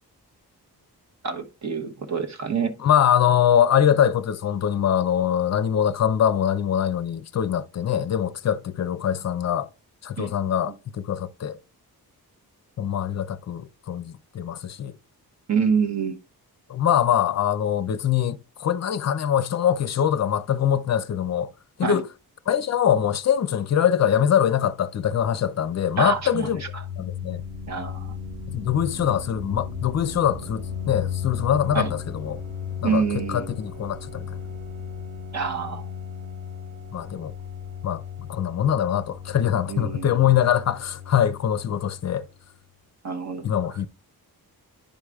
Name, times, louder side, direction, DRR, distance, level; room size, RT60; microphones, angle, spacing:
voice 1, 1.2-2.7 10.2-10.3 15.5-16.2 21.8-22.0 26.0-26.8 27.7-28.1 31.7-31.9 32.8-33.5 35.3-35.9 39.7-40.3 43.0-43.4, right 6 dB, 45° right, 1.0 m, -26 dB
voice 2, 2.8-9.7 10.0-11.6 12.8-14.9 16.7-21.5 21.8-22.1 22.5-26.6 27.0-27.4 28.5-32.4 32.8-33.0 33.3-34.4 36.9-37.3 37.8-42.3 43.4-43.9, left 9 dB, 45° left, 0.5 m, -23 dB
sound 1, 26.0-42.3, left 7 dB, 75° right, 3.3 m, -36 dB
10.5 x 4.8 x 2.3 m
wide cardioid pair, 140°, 38 cm